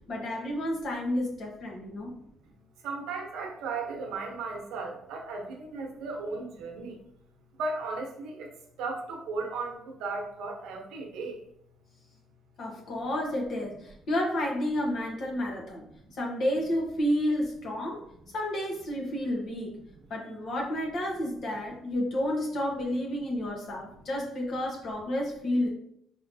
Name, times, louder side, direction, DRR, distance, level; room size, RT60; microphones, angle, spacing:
voice 1, 0.1-2.1 12.6-15.8 16.1-18.1 18.3-19.7 20.1-25.7, left 1 dB, 60° left, -1 dB, 1.1 m, -30 dB
voice 2, 2.8-7.0 7.5-8.5 8.8-11.4 16.0-16.2, right 3 dB, 85° right, 1 dB, 0.8 m, -35 dB
4.5 x 3.0 x 2.7 m, 0.73 s
cardioid pair, 90°, 0 cm